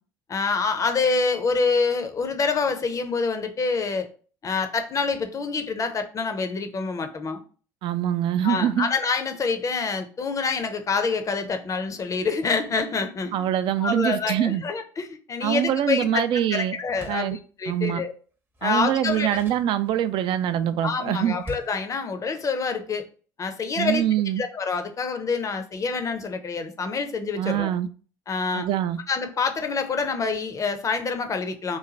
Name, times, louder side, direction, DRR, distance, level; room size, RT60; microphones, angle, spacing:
voice 1, 0.3-4.1 4.4-7.4 8.4-13.5 13.8-16.2 16.5-18.1 18.6-19.4 20.8-23.0 23.4-24.0 24.4-27.7 28.3-28.7 29.1-31.8, left 4 dB, 30° left, 7 dB, 0.6 m, -26 dB
voice 2, 7.8-8.9 13.3-14.6 15.4-16.8 17.1-17.4 17.7-18.0 18.6-21.4 23.8-24.4 27.4-27.9 28.5-29.0, right 11 dB, 50° right, 12 dB, 0.4 m, -24 dB
Door, 16.8-17.4 18.5-20.2 21.4-21.9, equal, 20° right, 0.7 m, -43 dB
3.1 x 2.2 x 3.8 m, 0.39 s
figure-of-eight pair, 60°, 11 cm